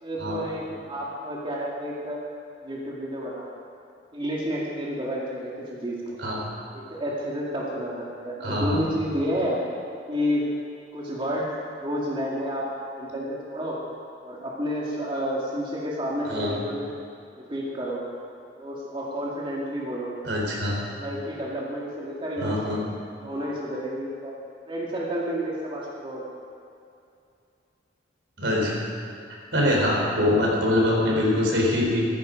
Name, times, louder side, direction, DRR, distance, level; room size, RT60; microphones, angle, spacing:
voice 1, 0.0-2.2 2.6-3.6 4.1-6.2 6.7-9.6 10.1-10.5 10.9-11.5 11.8-12.6 12.9-13.8 14.2-16.9 17.4-18.0 18.6-20.3 20.8-22.6 23.2-24.3 24.7-26.2, equal, 30° right, -5 dB, 2.3 m, -30 dB
voice 2, 8.4-8.8 16.2-16.5 20.2-20.8 22.4-22.8 28.4-28.9 29.5-32.1, left 1 dB, 80° right, -2 dB, 4.2 m, -23 dB
15.0 x 14.5 x 5.3 m, 2.5 s
head